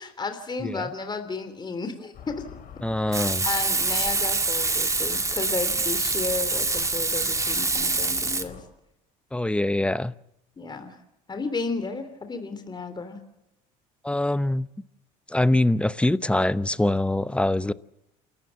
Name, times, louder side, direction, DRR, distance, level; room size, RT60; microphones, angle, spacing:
voice 1, 0.0-2.4 3.4-8.6 10.6-11.0 11.3-13.2, left 4 dB, 25° left, 3.3 m, -33 dB
voice 2, 0.6-0.9 2.8-3.5 9.3-10.1 14.0-14.7 15.3-17.7, left 1 dB, 5° left, 0.8 m, -24 dB
sound 1, 2.1-8.6, left 8 dB, 55° left, 4.9 m, -45 dB
Frying (food), 3.1-8.4, right 3 dB, 15° right, 2.2 m, -25 dB
28.5 x 14.0 x 7.2 m
supercardioid pair, 80°, 18 cm